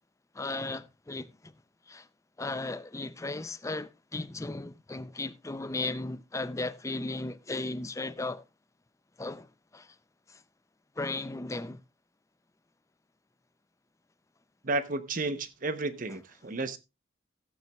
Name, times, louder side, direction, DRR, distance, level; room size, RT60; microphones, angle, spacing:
voice 1, 0.3-1.5 1.9-2.1 2.4-8.4 9.2-10.0 10.3-10.4 11.0-11.8, left 2 dB, 15° left, 0.5 m, -36 dB
voice 2, 14.6-16.8, right 2 dB, 45° right, 0.9 m, -32 dB
16.0 x 9.0 x 2.3 m
head